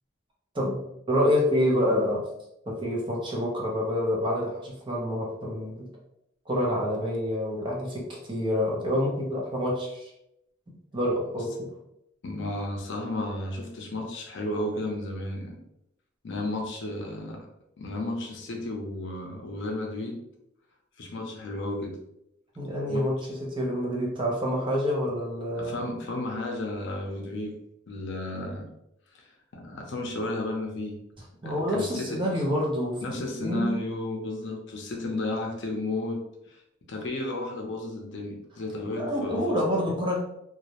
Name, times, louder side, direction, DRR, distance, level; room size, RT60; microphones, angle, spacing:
voice 1, 0.5-2.2 2.7-5.9 6.5-10.1 10.7-11.7 22.6-25.9 31.4-33.9 39.0-40.2, equal, 25° right, -3 dB, 0.6 m, -27 dB
voice 2, 12.2-15.6 16.2-17.5 17.8-20.2 21.0-21.9 22.9-23.0 25.6-27.6 27.9-28.7 29.1-29.3 29.5-31.0 31.5-32.2 33.0-36.2 36.5-36.6 36.9-39.6, left 2 dB, 65° left, 1 dB, 0.5 m, -33 dB
2.3 x 2.0 x 2.8 m, 0.81 s
head